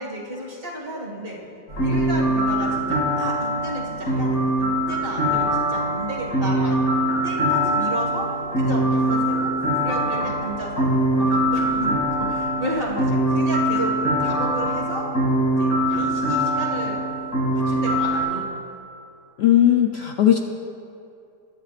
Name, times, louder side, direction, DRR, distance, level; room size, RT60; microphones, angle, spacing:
voice 1, 0.0-1.4 1.8-6.8 7.2-10.9 11.2-15.1 15.6-17.0 17.5-18.5, equal, 35° right, -2 dB, 2.0 m, -32 dB
sound 1, 1.7-18.2, right 1 dB, 65° left, 3.1 m, -22 dB
voice 2, 19.4-20.4, left 11 dB, 85° left, 4 dB, 0.5 m, -17 dB
22.5 x 10.5 x 2.5 m, 2.6 s
omnidirectional pair, 1.7 m